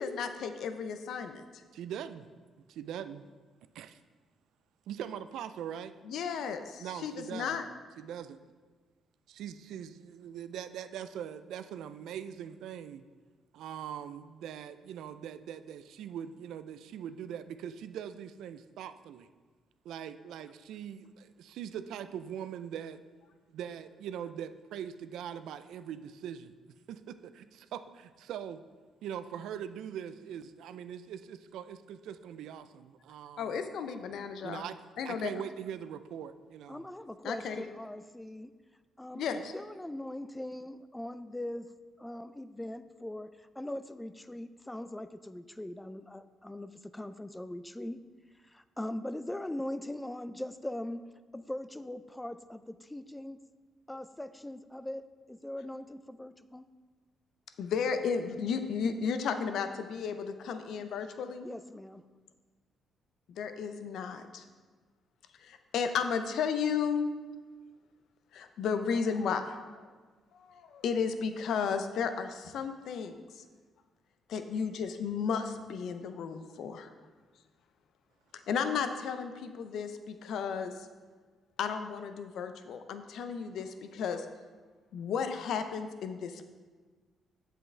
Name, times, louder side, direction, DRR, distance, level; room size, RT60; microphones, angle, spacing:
voice 1, 0.0-1.4 6.0-7.7 33.4-34.6 35.0-35.3 37.2-37.6 39.1-39.5 57.6-61.5 63.3-64.4 65.4-67.1 68.3-69.8 70.3-73.2 74.3-76.9 78.5-80.9 81.6-84.3 84.9-86.5, left 6 dB, 75° left, 8 dB, 0.5 m, -34 dB
voice 2, 1.7-2.3 2.7-3.2 3.7-4.0 4.9-5.9 6.8-7.6 8.0-8.4 9.3-13.0 13.5-19.3 19.8-23.0 23.5-26.5 26.9-28.6 29.0-33.5 34.4-34.8 35.0-36.8, right 9 dB, 80° right, 12 dB, 0.4 m, -42 dB
voice 3, 36.7-38.5 39.0-41.7 42.0-48.0 48.4-51.0 51.3-53.4 53.9-56.6 61.4-62.0, left 1 dB, 10° left, 12 dB, 0.4 m, -41 dB
7.9 x 7.4 x 3.3 m, 1.4 s
cardioid pair, 90°, 0 cm